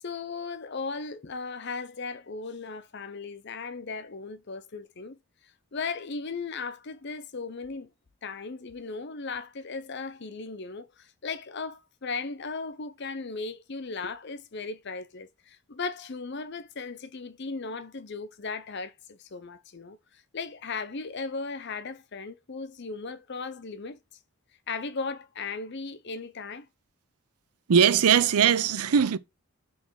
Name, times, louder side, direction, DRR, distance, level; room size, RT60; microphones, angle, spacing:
voice 1, 0.0-5.2 5.7-7.9 8.2-24.0 24.7-26.7, left 4 dB, 50° left, 0.6 m, -37 dB
voice 2, 27.7-29.2, right 7 dB, 85° right, 0.5 m, -20 dB
6.6 x 3.2 x 4.6 m
head